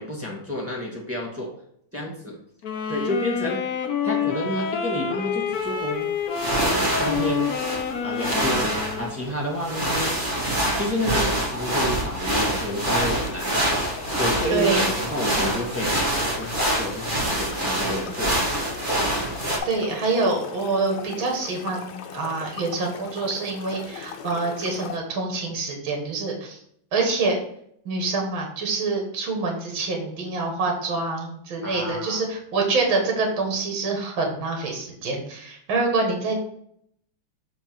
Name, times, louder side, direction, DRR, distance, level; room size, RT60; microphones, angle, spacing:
voice 1, 0.0-1.5 1.9-2.4 2.9-3.6 4.0-6.1 6.5-7.5 8.0-8.7 9.0-10.2 10.7-13.6 14.1-18.4 31.6-32.2, left 1 dB, 10° right, -2 dB, 1.3 m, -30 dB
sound 1, 2.6-9.2, left 7 dB, 55° left, 1.1 m, -28 dB
sound 2, 5.5-5.7 6.3-19.6, right 1 dB, 25° right, 1.4 m, -26 dB
sound 3, 13.1-25.0, left 8 dB, 85° left, 1.5 m, -39 dB
voice 2, 14.5-14.9 19.6-26.6 26.9-27.4 27.9-36.4, right 3 dB, 75° right, 1 dB, 2.3 m, -26 dB
7.0 x 4.5 x 4.4 m, 0.69 s
omnidirectional pair, 2.2 m